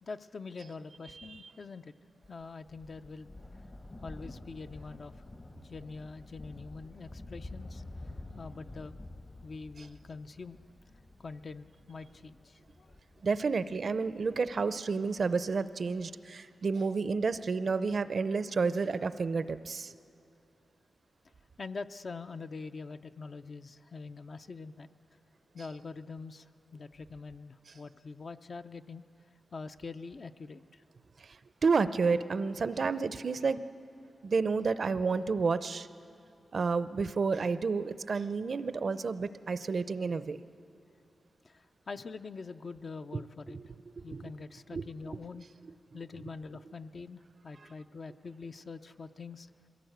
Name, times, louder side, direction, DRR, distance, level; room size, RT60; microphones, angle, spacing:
voice 1, 0.0-1.9 2.3-3.4 4.0-5.2 5.6-7.8 8.4-9.0 9.4-10.6 11.2-13.0 21.6-24.9 25.5-29.0 29.5-30.8 41.4-43.6 44.0-45.5 45.9-49.5, left 4 dB, 55° left, 8 dB, 0.5 m, -44 dB
Thunder, 2.2-15.1 16.0-16.1, left 2 dB, 35° left, 0.9 m, -49 dB
voice 2, 13.2-19.9 31.6-33.6 34.2-35.9 36.5-40.4 43.1-43.2 43.5-43.6 44.1-44.2 44.7-45.2, right 4 dB, 60° right, 13 dB, 0.6 m, -30 dB
21.5 x 16.5 x 7.9 m, 2.7 s
cardioid pair, 80°, 0 cm